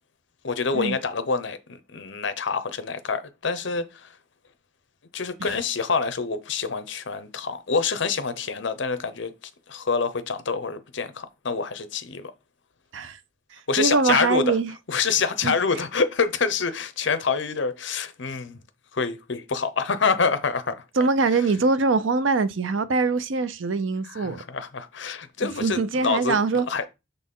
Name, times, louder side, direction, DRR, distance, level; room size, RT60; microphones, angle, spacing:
voice 1, 0.4-1.6 1.9-4.1 5.1-9.3 9.7-12.3 13.7-14.5 14.9-18.6 18.9-20.8 24.1-26.4 26.7-26.9, left 5 dB, 60° left, 0.7 m, -26 dB
voice 2, 13.8-14.7 15.4-15.5 21.0-24.4 25.4-26.6, right 4 dB, 70° right, 0.5 m, -23 dB
6.7 x 4.1 x 3.7 m
head